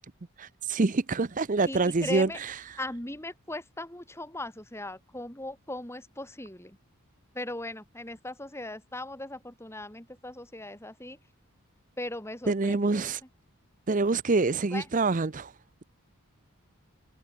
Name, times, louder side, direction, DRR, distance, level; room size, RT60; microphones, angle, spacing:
voice 1, 0.4-2.8 12.5-13.2 13.9-15.5, right 3 dB, 35° right, 0.6 m, -26 dB
voice 2, 1.6-2.4 2.8-6.8 7.3-11.2 12.0-13.1 14.7-14.8, left 1 dB, 10° left, 2.8 m, -38 dB
head